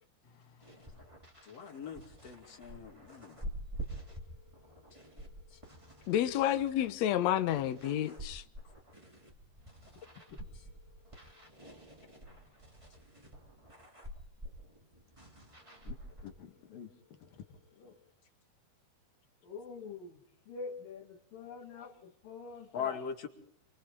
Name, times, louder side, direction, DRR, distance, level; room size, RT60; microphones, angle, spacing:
sound 1, 0.6-16.3, right 1 dB, 10° right, 2.5 m, -48 dB
voice 1, 1.5-3.4 5.5-5.6 22.7-23.3, left 7 dB, 45° left, 3.4 m, -41 dB
voice 2, 6.1-8.4, left 11 dB, 85° left, 1.5 m, -30 dB
voice 3, 16.2-16.9 17.2-18.0 19.4-23.0, left 5 dB, 65° left, 3.3 m, -47 dB
28.5 x 24.5 x 3.8 m
omnidirectional pair, 4.5 m